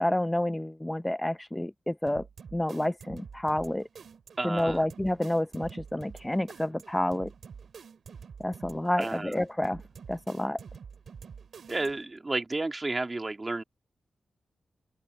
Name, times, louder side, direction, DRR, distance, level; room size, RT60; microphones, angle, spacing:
voice 1, 0.0-2.2 2.5-3.9 4.4-7.3 8.4-9.8 10.1-10.6, left 1 dB, 15° left, 0.6 m, -29 dB
sound 1, 2.1-12.2, right 6 dB, 70° right, 3.5 m, -48 dB
voice 2, 4.4-4.8 9.0-9.3 11.7-13.6, right 2 dB, 30° right, 2.3 m, -31 dB
open air
cardioid pair, 50°, 0 cm